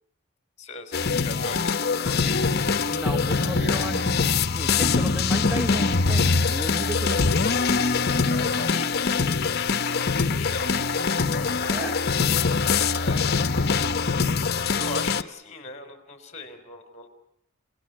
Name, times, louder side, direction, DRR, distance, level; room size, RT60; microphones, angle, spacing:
voice 1, 0.6-2.4 8.3-9.2 9.5-12.0 12.9-13.3 14.7-17.1, left 2 dB, 35° left, 8 dB, 3.9 m, -39 dB
sound 1, 0.9-15.2, left 4 dB, 50° left, 0.9 m, -23 dB
voice 2, 2.9-7.6 9.3-9.4 11.7-12.0, right 1 dB, 5° right, 3 dB, 1.1 m, -34 dB
30.0 x 18.5 x 7.6 m, 0.79 s
head